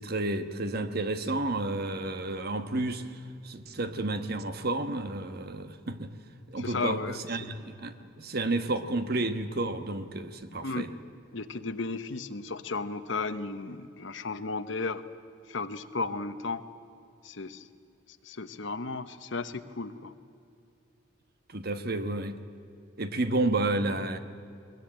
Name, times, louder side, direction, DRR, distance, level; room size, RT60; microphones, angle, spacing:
voice 1, 0.0-3.0 3.4-6.1 6.5-10.9 21.5-22.4 23.0-24.2, right 2 dB, 50° right, 9 dB, 1.2 m, -31 dB
voice 2, 6.6-7.5 10.6-10.9 11.3-15.0 15.5-16.6 17.2-17.6 18.2-20.1, left 3 dB, 65° left, 11 dB, 1.0 m, -34 dB
21.0 x 21.0 x 8.9 m, 2.5 s
head